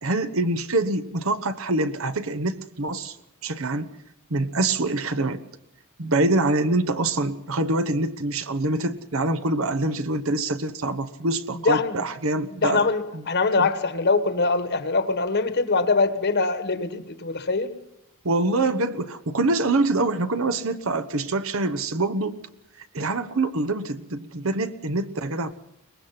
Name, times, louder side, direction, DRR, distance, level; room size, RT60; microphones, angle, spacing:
voice 1, 0.0-3.1 3.4-3.9 4.3-5.4 6.0-12.8 13.6-13.7 18.2-22.4 22.8-25.5, right 2 dB, 65° right, 9 dB, 1.1 m, -25 dB
voice 2, 11.6-12.1 12.5-17.8, left 3 dB, 50° left, 10 dB, 1.3 m, -23 dB
23.0 x 20.0 x 5.8 m, 0.84 s
head